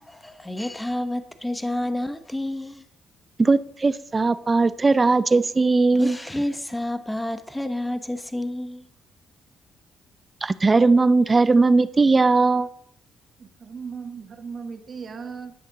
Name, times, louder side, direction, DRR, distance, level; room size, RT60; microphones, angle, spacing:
voice 1, 0.1-2.8 5.9-8.9, left 1 dB, 10° left, 1.0 m, -29 dB
voice 2, 3.4-6.2 10.4-12.7, right 3 dB, 25° right, 0.6 m, -19 dB
voice 3, 13.4-15.5, right 5 dB, 45° right, 1.6 m, -37 dB
11.0 x 6.4 x 6.5 m
cardioid pair, 90°, 0 cm